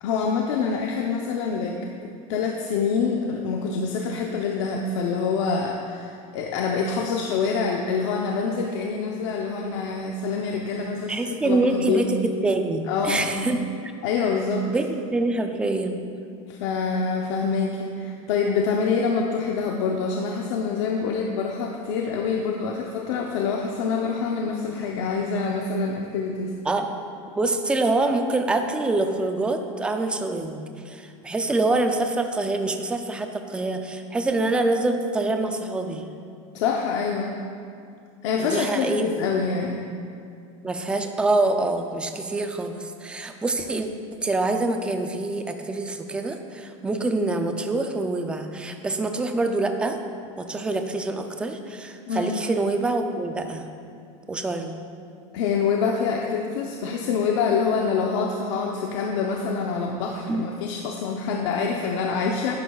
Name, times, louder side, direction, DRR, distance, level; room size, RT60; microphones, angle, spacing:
voice 1, 0.0-12.1 12.9-13.6 14.0-14.7 16.5-26.5 36.5-37.4 38.2-39.9 52.1-52.4 55.3-62.5, left 5 dB, 70° left, 1 dB, 0.7 m, -26 dB
voice 2, 11.1-13.9 14.7-16.0 26.7-27.0 27.4-36.1 38.4-39.0 40.6-43.9 44.2-50.0 50.4-53.7 54.3-54.8 60.3-60.4, right 2 dB, 5° right, 5 dB, 0.4 m, -25 dB
10.5 x 10.5 x 2.3 m, 2.4 s
cardioid pair, 170°, 16 cm